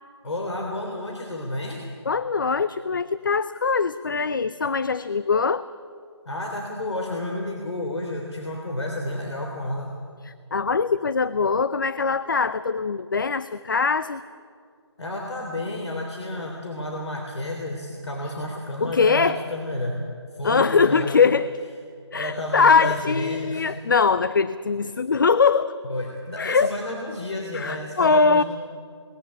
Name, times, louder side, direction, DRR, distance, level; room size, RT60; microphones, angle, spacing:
voice 1, 0.2-1.8 6.3-9.9 15.0-20.0 20.3-21.1 22.1-23.7 25.8-28.4, left 1 dB, 70° left, 1 dB, 3.4 m, -31 dB
voice 2, 2.1-5.7 10.2-14.2 18.8-19.4 20.4-21.5 22.1-25.8 26.4-26.7 27.5-28.4, left 5 dB, 45° left, 15 dB, 0.5 m, -22 dB
20.0 x 14.5 x 9.9 m, 2.2 s
figure-of-eight pair, 170°, 15 cm